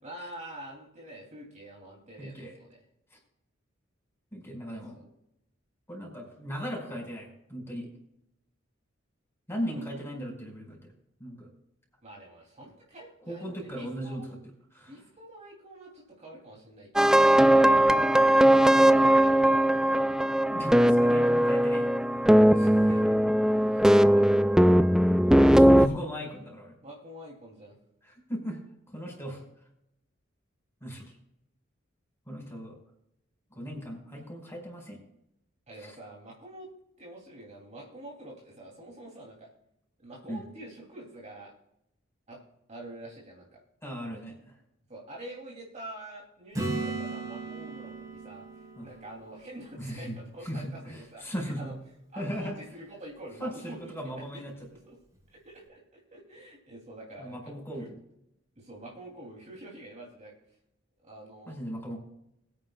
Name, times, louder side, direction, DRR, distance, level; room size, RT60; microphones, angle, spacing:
voice 1, 0.0-2.8 4.7-5.1 9.5-10.1 12.0-14.3 14.8-20.1 20.8-21.3 22.4-23.2 23.7-24.5 26.8-27.8 35.7-36.7 37.0-39.5 40.0-41.5 42.3-42.4 42.7-43.6 44.9-48.4 48.8-51.7 52.1-54.2 54.8-54.9 55.3-57.4 57.8-57.9 58.6-60.3 61.0-61.6, right 1 dB, 35° right, -2 dB, 3.0 m, -47 dB
voice 2, 2.2-2.6 3.1-3.2 4.3-5.0 5.9-7.9 9.5-10.9 11.2-11.5 13.3-14.3 14.7-15.0 20.5-21.9 25.2-26.8 28.0-28.6 28.9-29.4 30.8-31.1 32.3-32.8 33.5-35.0 35.8-36.0 40.3-40.4 43.8-44.5 48.8-48.9 49.8-51.8 52.2-52.6 53.4-54.5 57.2-58.0 61.5-62.0, equal, 15° left, 0 dB, 5.3 m, -37 dB
sound 1, 17.0-25.9, right 1 dB, 5° right, 0.3 m, -20 dB
Acoustic guitar / Strum, 46.5-50.3 55.2-55.3, right 3 dB, 20° right, 4.8 m, -37 dB
22.0 x 9.5 x 2.4 m, 0.78 s
head